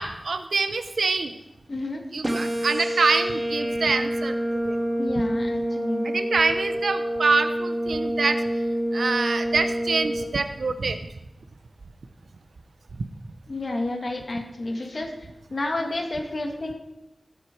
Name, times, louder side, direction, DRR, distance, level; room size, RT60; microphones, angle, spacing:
voice 1, 0.0-1.3 2.1-4.8 6.0-8.4 8.9-11.0, right 4 dB, 90° right, 9 dB, 0.9 m, -25 dB
voice 2, 1.7-2.0 2.4-2.5 5.0-6.1 13.5-16.7, left 2 dB, 55° left, 2 dB, 2.2 m, -30 dB
sound 1, 2.2-10.2, equal, 30° right, 2.1 m, -27 dB
17.5 x 7.9 x 4.7 m, 0.91 s
wide cardioid pair, 80°, 0 cm